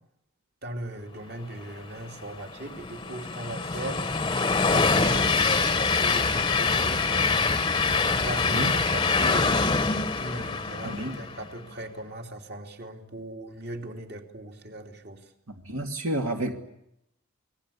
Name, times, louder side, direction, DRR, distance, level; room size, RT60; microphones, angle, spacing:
voice 1, 0.6-4.0 4.6-7.4 8.2-9.8 10.2-15.2, right 1 dB, 50° right, 3.0 m, -38 dB
Train, 2.0-11.5, left 4 dB, 20° left, 0.9 m, -25 dB
voice 2, 10.8-11.1 15.7-16.5, right 1 dB, 75° right, 2.5 m, -29 dB
29.0 x 20.5 x 8.7 m
head